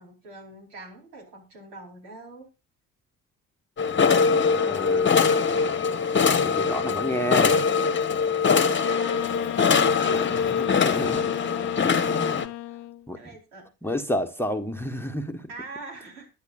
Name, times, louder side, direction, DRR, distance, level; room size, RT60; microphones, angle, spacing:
voice 1, 0.0-2.5 8.4-10.3 13.1-14.0 15.5-16.3, right 3 dB, 70° right, 0 dB, 4.4 m, -44 dB
sound 1, 3.8-12.5, left 5 dB, 25° left, 1.3 m, -22 dB
voice 2, 4.5-5.4 6.4-7.6 10.1-11.3 12.0-12.4 13.1-13.2 13.8-15.5, left 1 dB, 5° left, 9 dB, 1.3 m, -30 dB
Wind instrument woodwind instrument, 8.8-13.1, left 16 dB, 65° left, 0.9 m, -35 dB
20.0 x 11.0 x 2.5 m, 0.28 s
figure-of-eight pair, 50°, 47 cm